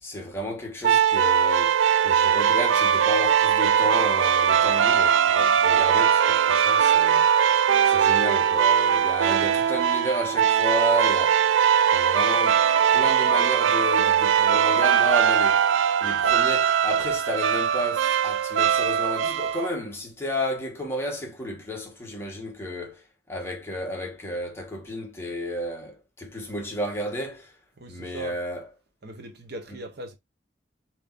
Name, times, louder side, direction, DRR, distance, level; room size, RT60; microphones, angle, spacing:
voice 1, 0.0-7.3 7.8-11.5 11.9-12.6 12.9-15.6 16.0-23.0 23.3-27.5 27.9-28.7, equal, 15° left, 1.3 m, -32 dB
sound 1, 0.8-19.7, right 8 dB, 75° right, 0.3 m, -20 dB
voice 2, 27.8-28.4 29.0-30.1, right 1 dB, 55° right, 1.0 m, -39 dB
6.7 x 3.1 x 2.5 m
head